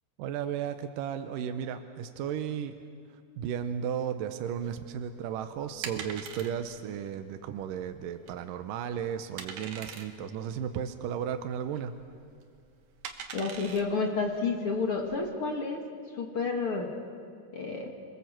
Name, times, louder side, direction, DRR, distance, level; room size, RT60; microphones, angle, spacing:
voice 1, 0.2-2.8 3.4-12.0, right 8 dB, 75° right, 8 dB, 2.1 m, -34 dB
sound 1, 4.6-15.2, right 6 dB, 60° right, 2.1 m, -44 dB
voice 2, 13.3-15.8 16.1-16.9 17.5-17.9, left 4 dB, 45° left, 2 dB, 2.2 m, -30 dB
27.0 x 21.0 x 7.6 m, 2.2 s
omnidirectional pair, 4.7 m